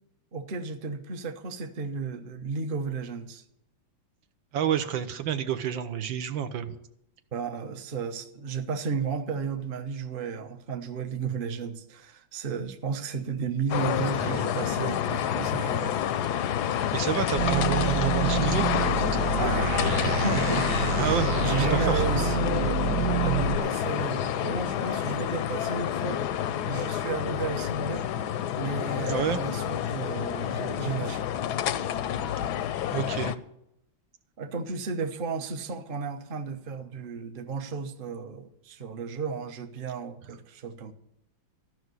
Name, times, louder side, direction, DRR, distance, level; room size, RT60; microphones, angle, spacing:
voice 1, 0.3-3.4 7.3-16.0 19.4-19.7 20.0-26.2 26.7-28.1 28.6-31.3 34.4-40.9, right 5 dB, 40° right, 6 dB, 0.8 m, -33 dB
voice 2, 4.5-6.7 14.2-14.3 16.9-18.7 21.0-21.3 21.6-22.0 29.1-29.4 32.2-32.5 32.9-33.4, right 9 dB, 75° right, 10 dB, 1.6 m, -29 dB
sound 1, 13.7-33.4, left 10 dB, 70° left, 1.0 m, -28 dB
sound 2, 17.4-23.6, right 7 dB, 60° right, 1.1 m, -28 dB
14.0 x 6.3 x 9.5 m, 0.79 s
omnidirectional pair, 2.1 m